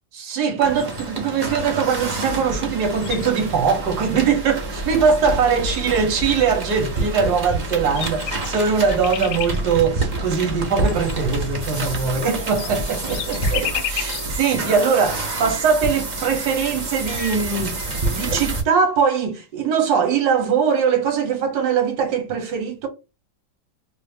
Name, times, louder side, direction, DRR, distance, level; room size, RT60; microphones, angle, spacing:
voice 1, 0.1-17.8 18.1-22.9, right 6 dB, 65° right, 1.3 m, -21 dB
sound 1, 0.6-18.6, right 2 dB, 80° right, 0.4 m, -28 dB
sound 2, 0.8-1.4 2.2-2.4 2.6-3.7 4.4-4.5 5.3-5.4 5.6-6.3 7.4-7.5 7.8-9.6 10.8-14.3 14.9-15.0 16.1-16.2 16.4-18.2, left 11 dB, 70° left, 1.0 m, -34 dB
3.0 x 2.4 x 3.3 m
omnidirectional pair, 2.0 m